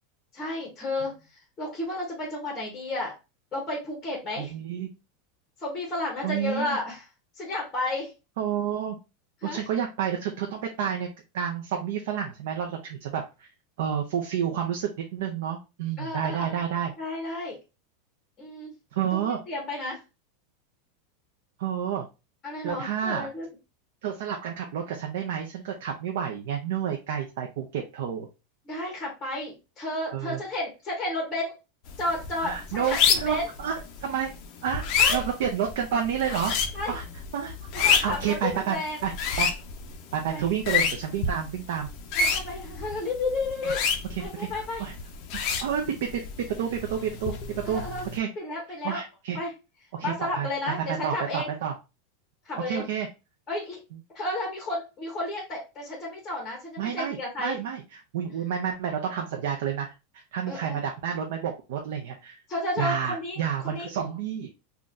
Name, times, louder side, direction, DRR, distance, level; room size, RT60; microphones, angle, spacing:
voice 1, 0.3-3.1 3.5-4.5 5.6-7.1 7.4-8.1 9.4-9.6 16.0-16.6 17.0-17.6 18.4-18.8 19.1-20.0 22.4-23.5 28.7-31.6 32.0-33.5 35.0-35.3 36.7-37.0 37.7-39.0 40.3-40.4 42.2-43.8 44.2-44.8 47.6-48.1 48.4-49.0 49.3-49.5 50.0-51.5 52.4-52.8 53.5-53.8 54.1-57.6 60.5-60.8 62.5-63.9, left 2 dB, 10° left, 0 dB, 0.8 m, -32 dB
voice 2, 4.4-4.9 6.2-6.8 8.4-9.0 9.4-11.1 11.3-13.5 13.8-16.9 18.9-19.4 21.6-22.1 22.6-23.3 24.0-28.3 30.1-30.4 32.4-34.3 34.6-34.8 35.1-36.5 36.9-37.0 37.3-39.1 39.4-39.5 40.1-41.9 44.3-44.9 45.6-46.2 46.5-47.8 48.1-48.3 48.8-49.4 49.9-50.5 50.9-51.7 52.7-53.1 56.8-57.8 58.1-59.9 60.3-62.4 62.8-64.5, right 8 dB, 60° right, 2 dB, 0.5 m, -30 dB
sound 1, 31.9-48.2, left 6 dB, 35° left, 0.4 m, -29 dB
3.7 x 2.2 x 2.5 m, 0.27 s
supercardioid pair, 175°, 0 cm